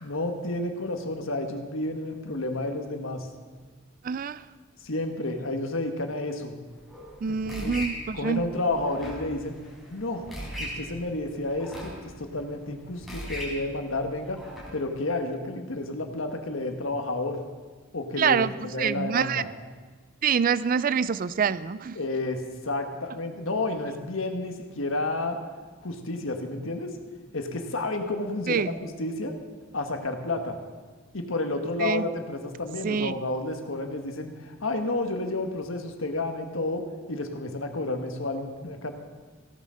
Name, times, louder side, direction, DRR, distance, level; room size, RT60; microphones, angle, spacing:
voice 1, 0.0-3.3 4.8-6.6 7.3-7.7 8.1-9.6 9.9-10.3 10.6-14.4 14.7-17.4 17.9-19.4 21.9-25.4 25.8-27.0 27.3-29.3 29.7-30.6 31.1-38.9, left 2 dB, 80° left, 5 dB, 1.6 m, -31 dB
voice 2, 4.0-4.4 7.2-8.5 18.2-19.4 20.2-22.0 28.5-28.7 31.8-32.1 32.8-33.1, right 6 dB, 45° right, 17 dB, 0.4 m, -26 dB
sound 1, 6.7-14.7, equal, ahead, 4.3 m, -40 dB
16.0 x 9.3 x 6.5 m, 1.4 s
head